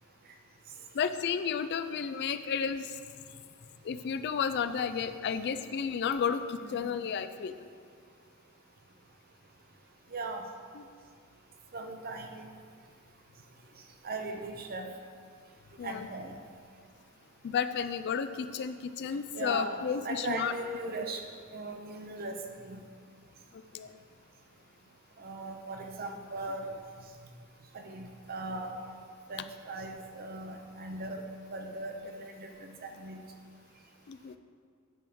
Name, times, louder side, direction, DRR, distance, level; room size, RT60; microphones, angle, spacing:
voice 1, 0.9-2.9 3.8-7.5 10.8-10.9 15.8-16.1 17.4-20.5 23.7-24.0 34.1-34.4, left 7 dB, 50° left, 11 dB, 0.3 m, -32 dB
voice 2, 6.6-7.1 10.1-10.4 11.7-12.4 14.0-14.9 15.8-16.4 19.4-21.2 21.5-22.8 25.2-26.7 27.7-28.8 29.3-31.2 31.5-33.2, right 2 dB, 45° right, 4 dB, 0.7 m, -39 dB
9.1 x 3.6 x 6.0 m, 2.1 s
head